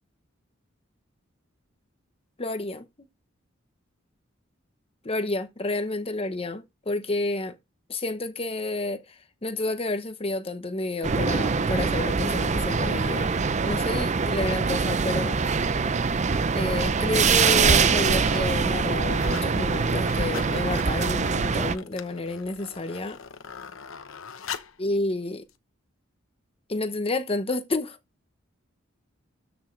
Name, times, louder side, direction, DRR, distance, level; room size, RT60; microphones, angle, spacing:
voice 1, 2.4-2.9 5.0-7.6 7.9-9.0 9.4-13.3 13.6-15.4 16.5-23.2 24.8-25.5 26.7-28.0, left 2 dB, 30° left, 0.9 m, -30 dB
sound 1, 11.0-21.8, right 5 dB, 35° right, 0.6 m, -24 dB
sound 2, 16.2-16.4 17.0-17.5 17.8-18.5 18.8-19.5 19.8-24.8 25.5-25.6, left 7 dB, 90° left, 1.0 m, -41 dB
13.0 x 6.1 x 3.3 m
head